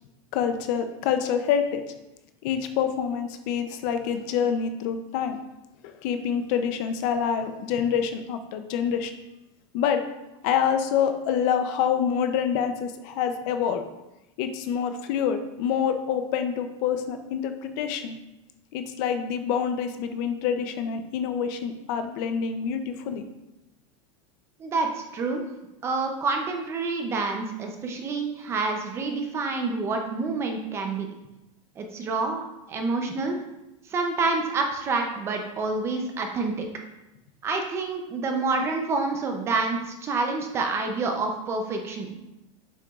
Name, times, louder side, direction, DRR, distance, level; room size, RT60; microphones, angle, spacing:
voice 1, 0.3-1.8 2.4-5.4 5.8-9.1 9.7-10.0 10.4-13.8 14.4-18.1 18.7-23.2, left 8 dB, 35° left, 8 dB, 0.5 m, -26 dB
voice 2, 24.6-25.4 25.8-31.1 31.8-33.4 33.9-36.6 37.4-42.1, right 3 dB, 15° right, 4 dB, 0.5 m, -28 dB
7.7 x 5.9 x 2.3 m, 0.95 s
supercardioid pair, 175°, 17 cm